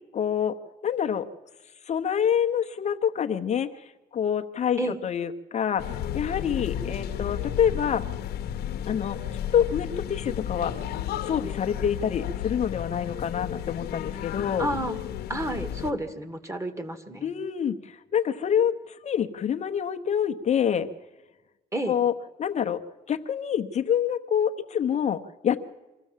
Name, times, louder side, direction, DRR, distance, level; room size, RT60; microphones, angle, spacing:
voice 1, 0.1-0.6 0.8-1.3 1.9-8.0 8.9-9.2 9.5-10.8 11.2-14.7 17.2-20.9 21.9-22.1 22.4-22.8 23.1-25.6, left 8 dB, 40° left, 7 dB, 1.0 m, -26 dB
sound 1, 5.8-15.9, left 10 dB, 70° left, 1.1 m, -33 dB
voice 2, 14.6-15.0 15.3-17.3 21.7-21.9, right 1 dB, 15° right, 11 dB, 1.9 m, -30 dB
24.5 x 14.0 x 7.4 m, 1.1 s
cardioid pair, 110°, 17 cm